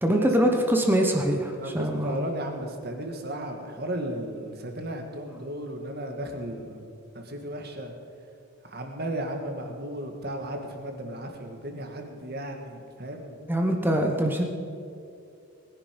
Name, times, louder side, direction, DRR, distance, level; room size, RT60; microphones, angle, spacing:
voice 1, 0.0-2.3 13.5-14.4, right 1 dB, 10° right, 2 dB, 1.1 m, -23 dB
voice 2, 1.6-6.8 7.3-7.9 8.6-13.4, right 1 dB, 45° right, 3 dB, 1.9 m, -35 dB
21.0 x 10.5 x 5.3 m, 2.6 s
head